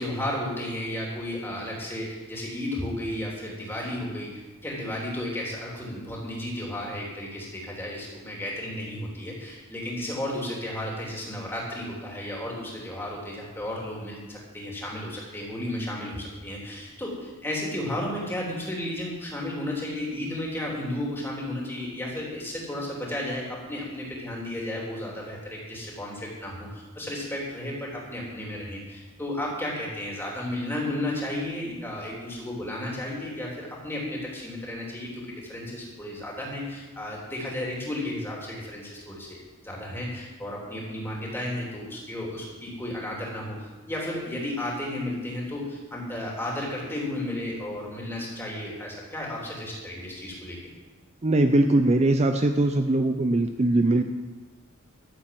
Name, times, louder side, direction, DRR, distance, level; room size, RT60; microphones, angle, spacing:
voice 1, 0.0-39.4 39.6-50.6, left 1 dB, 10° left, -3 dB, 3.4 m, -33 dB
voice 2, 51.2-54.0, right 2 dB, 30° right, 6 dB, 0.6 m, -21 dB
13.5 x 7.7 x 7.7 m, 1.2 s
head